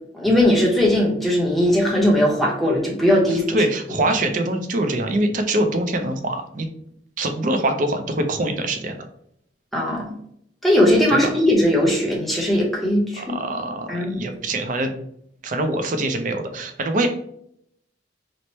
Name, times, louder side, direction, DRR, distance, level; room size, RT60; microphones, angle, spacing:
voice 1, 0.1-3.6 9.7-10.1 10.6-13.4 13.9-14.3, left 1 dB, ahead, -3 dB, 0.8 m, -19 dB
voice 2, 3.5-6.7 7.2-9.0 11.1-11.2 13.2-14.9 15.4-17.1, right 1 dB, 45° right, 6 dB, 0.4 m, -24 dB
3.1 x 2.0 x 4.1 m, 0.70 s
head